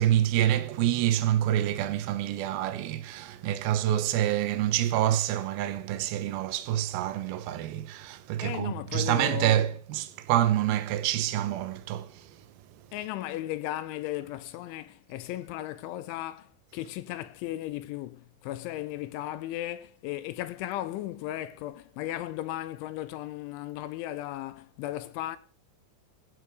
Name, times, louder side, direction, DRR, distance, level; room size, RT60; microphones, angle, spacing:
voice 1, 0.0-12.3, right 12 dB, 90° right, 2.1 m, -27 dB
voice 2, 8.4-9.6 12.9-25.4, left 14 dB, 80° left, 2.9 m, -36 dB
17.0 x 8.1 x 5.1 m
omnidirectional pair, 5.9 m